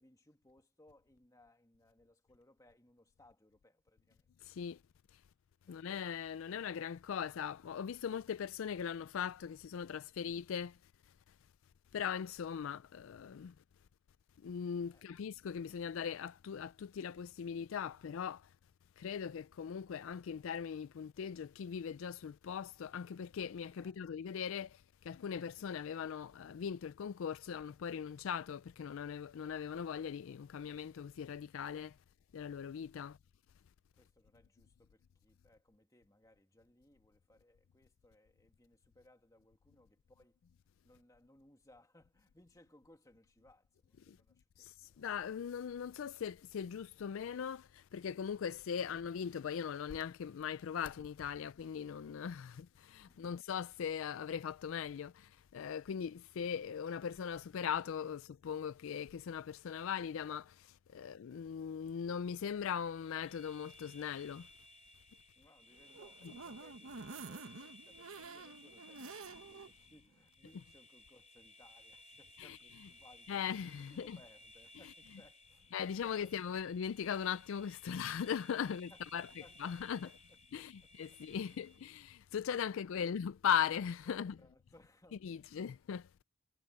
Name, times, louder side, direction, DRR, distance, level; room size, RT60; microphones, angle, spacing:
voice 1, 0.0-4.3 5.6-6.0 14.9-15.3 23.8-24.0 33.9-40.4 40.8-45.1 53.1-53.5 65.4-76.5 78.7-80.9 81.3-82.0 84.0-85.8, left 1 dB, 15° left, 2.0 m, -65 dB
voice 2, 4.5-4.8 5.7-10.7 11.9-13.5 14.4-18.4 19.0-24.7 25.1-31.9 32.3-33.2 44.6-60.5 60.9-64.5 66.2-66.4 72.4-72.6 73.3-74.2 74.8-74.9 75.7-80.1 80.5-84.3 85.1-86.0, left 7 dB, 65° left, 0.4 m, -39 dB
sound 1, 62.8-82.0, left 1 dB, 30° left, 3.4 m, -60 dB
sound 2, 65.7-69.7 70.1-70.2 70.5-70.6, right 4 dB, 75° right, 1.0 m, -49 dB
head